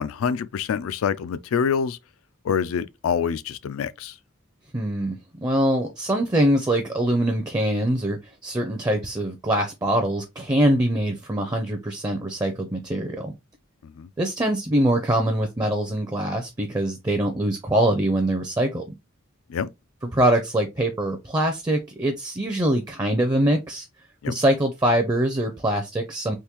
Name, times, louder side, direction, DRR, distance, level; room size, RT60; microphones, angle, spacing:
voice 1, 0.0-2.0 2.4-4.2 13.8-14.1 19.5-19.7 24.2-24.3, left 7 dB, 85° left, 0.4 m, -26 dB
voice 2, 4.7-13.3 14.2-18.8 20.1-23.9 24.3-26.4, right 1 dB, 20° right, 0.4 m, -23 dB
3.6 x 2.5 x 2.9 m
head